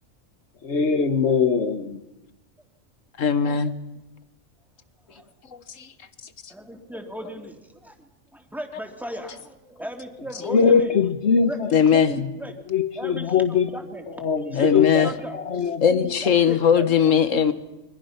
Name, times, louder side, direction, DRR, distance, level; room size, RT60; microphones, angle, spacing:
voice 1, 0.6-2.0 10.4-12.3 12.7-13.8 14.1-16.2, left 6 dB, 60° left, 10 dB, 1.7 m, -22 dB
voice 2, 3.2-3.7 11.7-12.1 14.6-15.1 15.8-17.5, left 7 dB, 75° left, 12 dB, 1.7 m, -19 dB
voice 3, 6.5-8.0 8.3-10.9 11.4-11.6 11.9-12.1 12.4-12.5 13.0-13.3 13.7-14.2 14.5-17.0, equal, ahead, 4 dB, 2.6 m, -36 dB
28.0 x 24.0 x 5.9 m, 0.96 s
omnidirectional pair, 1.3 m